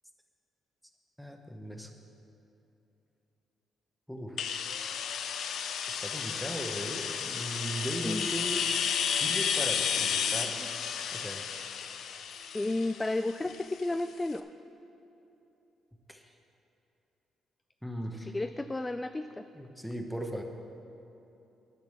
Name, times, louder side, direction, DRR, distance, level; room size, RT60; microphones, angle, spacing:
voice 1, 1.2-1.9 4.1-4.4 5.9-8.6 9.1-10.7 11.1-11.4 16.1-16.3 17.8-18.3 19.5-20.4, equal, ahead, 3 dB, 1.1 m, -38 dB
sound 1, 4.4-14.0, left 7 dB, 70° left, 0.5 m, -32 dB
voice 2, 12.5-14.5 18.3-19.4, left 2 dB, 15° left, 9 dB, 0.3 m, -32 dB
10.5 x 6.1 x 7.3 m, 3.0 s
cardioid pair, 90°, 0 cm